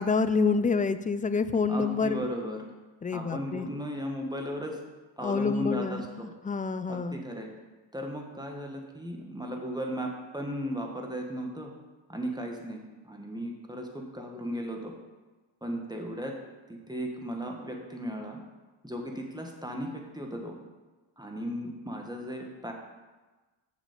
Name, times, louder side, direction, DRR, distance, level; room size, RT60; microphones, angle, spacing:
voice 1, 0.0-2.3 3.0-3.7 5.2-7.2, left 4 dB, 20° left, 12 dB, 0.4 m, -27 dB
voice 2, 1.7-2.7 3.1-4.8 5.2-6.3 6.9-7.5 7.9-11.7 12.1-12.8 13.0-14.9 15.6-16.3 16.7-18.4 18.8-20.5 21.2-22.7, equal, 10° right, 1 dB, 1.5 m, -36 dB
7.2 x 5.1 x 6.8 m, 1.2 s
cardioid pair, 75°, 48 cm